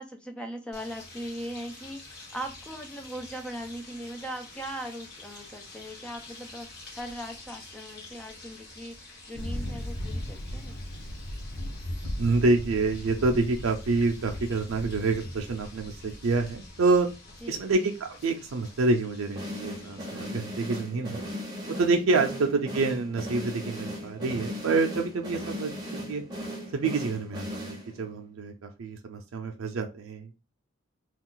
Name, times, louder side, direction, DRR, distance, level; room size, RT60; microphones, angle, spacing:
voice 1, 0.0-6.7 6.9-10.8 17.4-17.7, equal, 5° left, 4 dB, 0.4 m, -39 dB
sound 1, 0.7-20.3, left 2 dB, 50° left, 1.1 m, -48 dB
Thunder, 9.3-17.6, left 1 dB, 85° left, 0.6 m, -38 dB
voice 2, 12.2-17.1 17.5-21.2 21.7-26.2 26.7-30.4, right 3 dB, 90° right, 4 dB, 0.5 m, -27 dB
sound 2, 19.4-28.2, equal, 20° right, 0.8 m, -37 dB
2.4 x 2.4 x 3.7 m, 0.28 s
head